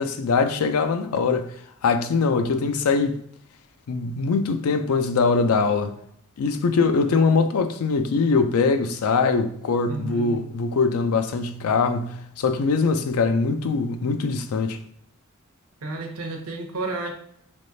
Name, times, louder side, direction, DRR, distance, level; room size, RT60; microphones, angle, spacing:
voice 1, 0.0-1.5 1.8-3.2 3.9-5.9 6.4-14.8, left 4 dB, 80° left, 0.4 m, -22 dB
voice 2, 9.9-10.4 15.8-17.1, right 2 dB, 85° right, 0.7 m, -31 dB
3.4 x 3.1 x 2.6 m
head